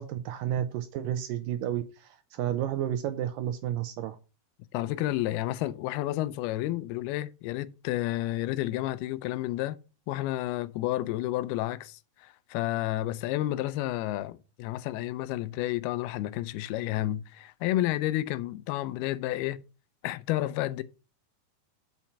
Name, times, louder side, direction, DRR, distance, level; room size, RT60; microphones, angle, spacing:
voice 1, 0.0-4.2, right 10 dB, 80° right, 2.0 m, -31 dB
voice 2, 4.7-9.8 10.1-19.6 20.0-20.8, left 15 dB, 85° left, 2.5 m, -31 dB
7.2 x 5.6 x 6.0 m
omnidirectional pair, 4.4 m